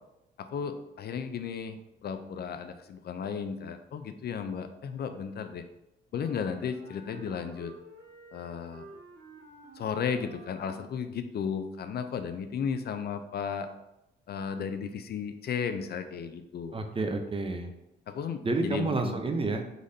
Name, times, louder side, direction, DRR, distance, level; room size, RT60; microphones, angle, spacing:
voice 1, 0.4-5.6 6.1-7.7 8.3-8.9 9.8-13.7 14.3-16.8 18.1-19.2, left 6 dB, 55° left, 9 dB, 0.5 m, -34 dB
Wind instrument woodwind instrument, 6.1-11.1, right 2 dB, 50° right, 1.4 m, -52 dB
voice 2, 16.7-17.7 18.4-19.6, right 3 dB, 30° right, 5 dB, 0.7 m, -29 dB
4.9 x 3.9 x 2.7 m, 0.88 s
cardioid pair, 90°, 20 cm